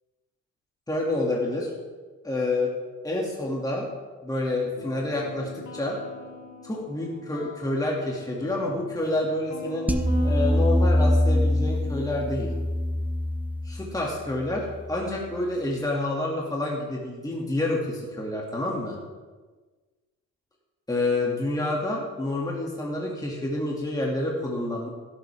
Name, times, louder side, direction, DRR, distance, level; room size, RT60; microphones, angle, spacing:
voice 1, 0.9-1.7 2.2-2.7 3.0-3.9 4.2-6.0 6.6-9.9 10.2-12.5 13.6-19.0 20.9-24.9, left 2 dB, 10° left, -3 dB, 2.2 m, -28 dB
sound 1, 4.8-10.8, left 5 dB, 65° left, 2.2 m, -43 dB
sound 2, 9.9-15.1, left 1 dB, 5° right, 0.8 m, -24 dB
16.5 x 8.0 x 3.5 m, 1.3 s
cardioid pair, 90°, 30 cm